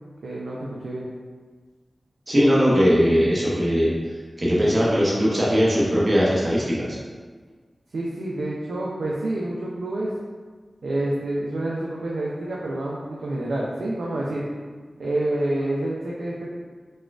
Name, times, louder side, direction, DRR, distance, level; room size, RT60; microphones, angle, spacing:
voice 1, 0.2-1.1 7.9-10.1 10.8-14.4 15.0-16.5, right 1 dB, 85° right, -5 dB, 0.4 m, -28 dB
voice 2, 2.3-3.9 4.4-7.0, equal, 45° right, -6 dB, 0.8 m, -19 dB
4.1 x 2.3 x 2.4 m, 1.5 s
cardioid pair, 40°, 0 cm